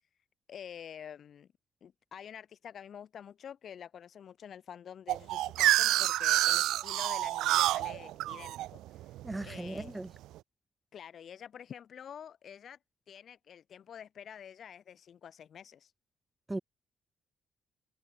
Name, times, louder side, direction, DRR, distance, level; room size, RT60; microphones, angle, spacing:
voice 1, 0.5-1.5 1.8-9.1 9.4-10.0 10.9-12.8 13.1-15.9, left 8 dB, 60° left, 6.5 m, -48 dB
sound 1, 5.1-9.9, right 15 dB, 90° right, 2.0 m, -28 dB
voice 2, 9.2-10.1 16.5-16.6, right 2 dB, 15° right, 2.1 m, -37 dB
cardioid pair, 90°, 0 cm